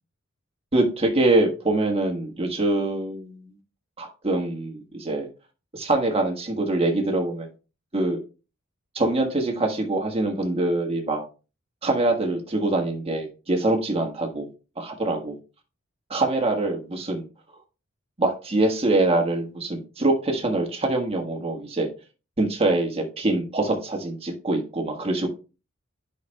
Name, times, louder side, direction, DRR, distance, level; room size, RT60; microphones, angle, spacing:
voice 1, 0.7-3.5 4.0-5.3 5.7-7.5 7.9-8.2 8.9-11.2 11.8-14.5 14.8-15.4 16.1-17.2 18.2-21.9 22.4-25.3, right 2 dB, 30° right, 1.5 m, -24 dB
10.5 x 5.8 x 2.3 m
head